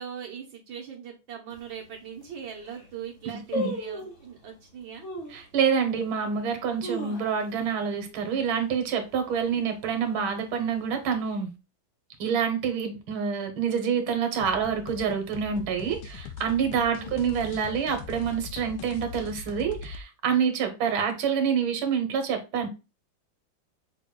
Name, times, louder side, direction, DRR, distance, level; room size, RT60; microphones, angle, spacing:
voice 1, 0.0-5.1 16.8-17.3 20.6-21.1, right 8 dB, 75° right, 1.7 m, -41 dB
sound 1, 1.5-1.6 2.2-2.3 2.5-2.9 3.5-4.3 5.0-5.4 5.9-6.0 6.6-7.7 8.0-8.1 8.4-8.8 9.2-9.6 10.2-10.9 11.2-11.3, left 1 dB, 45° left, 1.2 m, -35 dB
voice 2, 3.3-3.7 5.3-11.5 12.2-22.7, right 7 dB, 90° right, 1.8 m, -27 dB
sound 2, 14.4-20.0, left 6 dB, 75° left, 1.2 m, -41 dB
5.8 x 2.3 x 3.7 m
omnidirectional pair, 2.1 m